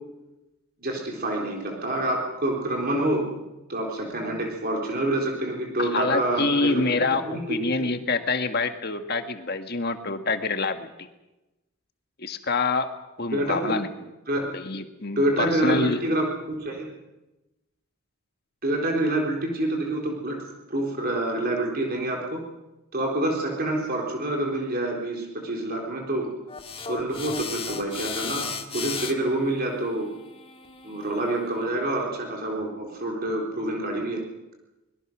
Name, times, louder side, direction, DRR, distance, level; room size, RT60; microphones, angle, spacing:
voice 1, 0.8-3.3 3.7-6.8 7.2-7.9 13.3-13.8 14.3-14.5 15.2-16.9 18.6-22.4 22.9-26.3 26.8-30.1 30.8-34.3, right 1 dB, 45° right, 0 dB, 3.9 m, -27 dB
voice 2, 5.8-11.1 12.2-12.9 13.2-13.9 14.5-16.0, left 3 dB, 45° left, 7 dB, 1.7 m, -26 dB
sound 1, 26.5-31.7, left 5 dB, 25° left, 1.5 m, -36 dB
24.5 x 21.5 x 6.2 m, 1.0 s
head